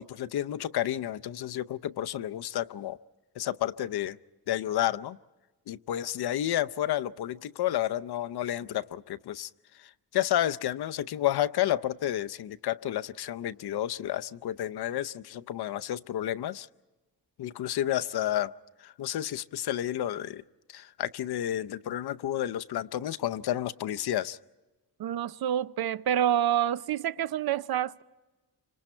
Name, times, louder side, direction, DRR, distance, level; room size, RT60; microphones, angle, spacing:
voice 1, 0.0-3.0 3.4-4.2 4.5-5.2 5.7-9.5 9.8-16.7 17.4-18.5 18.8-20.4 20.7-24.4, left 12 dB, 70° left, 0.7 m, -31 dB
voice 2, 25.0-28.0, right 10 dB, 65° right, 0.6 m, -27 dB
28.0 x 25.5 x 4.4 m
wide cardioid pair, 155°, 40 cm